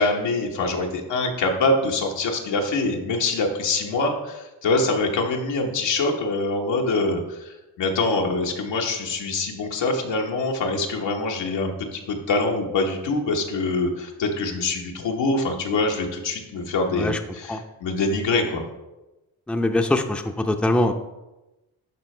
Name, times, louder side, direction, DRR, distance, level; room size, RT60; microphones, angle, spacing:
voice 1, 0.0-18.6, left 3 dB, 80° left, 1 dB, 1.3 m, -24 dB
voice 2, 19.5-20.9, left 1 dB, ahead, 5 dB, 0.6 m, -22 dB
11.5 x 4.1 x 3.3 m, 1.0 s
supercardioid pair, 50°, 44 cm